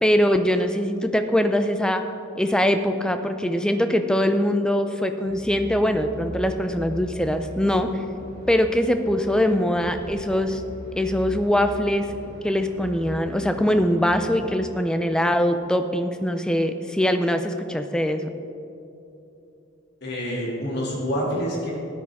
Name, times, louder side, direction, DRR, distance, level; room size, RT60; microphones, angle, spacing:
voice 1, 0.0-2.0 2.4-7.9 8.5-10.6 10.9-12.1 12.4-18.3, equal, 5° left, 8 dB, 0.4 m, -22 dB
sound 1, 5.2-14.4, equal, 35° right, 2.9 m, -39 dB
voice 2, 20.0-21.7, equal, 50° left, -4 dB, 2.5 m, -27 dB
13.0 x 9.5 x 3.6 m, 2.8 s
head